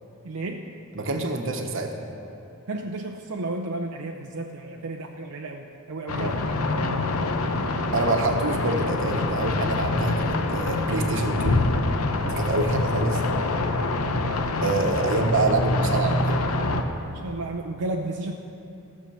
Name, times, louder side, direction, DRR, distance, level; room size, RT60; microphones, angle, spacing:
voice 1, 0.2-0.7 2.7-6.4 17.1-18.3, right 2 dB, 80° right, 2 dB, 0.6 m, -33 dB
voice 2, 1.0-2.0 6.2-6.4 7.9-11.6 12.2-13.2 14.6-16.4, right 2 dB, 60° right, 3 dB, 1.1 m, -26 dB
sound 1, 6.1-16.8, left 2 dB, 75° left, 0.8 m, -25 dB
15.5 x 6.6 x 7.0 m, 2.8 s
head